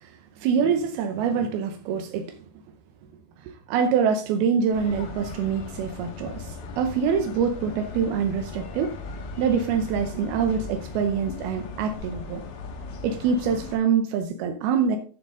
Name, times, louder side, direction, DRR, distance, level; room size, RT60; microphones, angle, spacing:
voice 1, 0.4-2.4 3.7-8.9 9.4-12.4 13.0-15.0, right 6 dB, 80° right, 2.2 m, -25 dB
sound 1, 4.7-13.8, left 4 dB, 90° left, 4.1 m, -38 dB
11.0 x 6.7 x 3.7 m
omnidirectional pair, 5.4 m